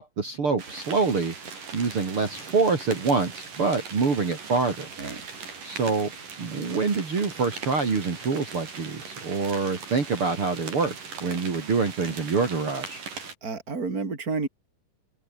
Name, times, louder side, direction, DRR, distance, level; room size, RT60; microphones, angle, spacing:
voice 1, 0.0-1.3 1.7-4.9 5.6-6.1 6.4-13.0, right 4 dB, 40° right, 3.9 m, -26 dB
sound 1, 0.6-13.3, right 5 dB, 80° right, 6.7 m, -40 dB
voice 2, 13.4-14.5, right 4 dB, 25° right, 4.2 m, -30 dB
omnidirectional pair, 3.7 m